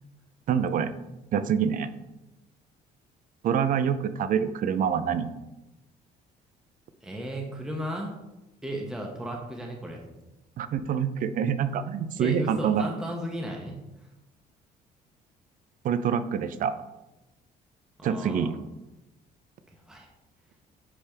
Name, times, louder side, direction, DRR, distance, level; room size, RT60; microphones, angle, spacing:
voice 1, 0.5-0.9 1.3-1.9 3.4-5.3 10.6-12.9 15.8-16.7 18.0-18.6, right 7 dB, 55° right, 12 dB, 0.5 m, -26 dB
voice 2, 7.0-8.1 8.6-10.1 12.2-13.8 18.0-18.6 19.7-20.1, equal, 5° right, 0 dB, 0.8 m, -35 dB
9.9 x 3.4 x 3.4 m, 1.0 s
cardioid pair, 110°, 17 cm